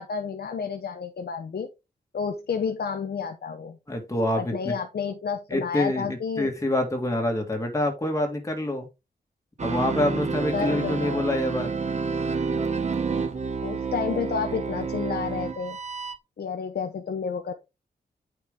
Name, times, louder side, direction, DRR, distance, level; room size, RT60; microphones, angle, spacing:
voice 1, 0.0-1.7 2.1-3.8 4.4-6.5 10.5-11.2 13.6-15.8 16.4-17.5, left 6 dB, 65° left, 5 dB, 0.9 m, -30 dB
voice 2, 3.9-4.8 5.5-8.9 9.6-11.7, left 1 dB, 15° left, 2 dB, 2.0 m, -26 dB
sound 1, 9.6-16.2, right 5 dB, 40° right, 1.1 m, -29 dB
9.1 x 4.8 x 3.5 m, 0.25 s
wide cardioid pair, 135°, 17 cm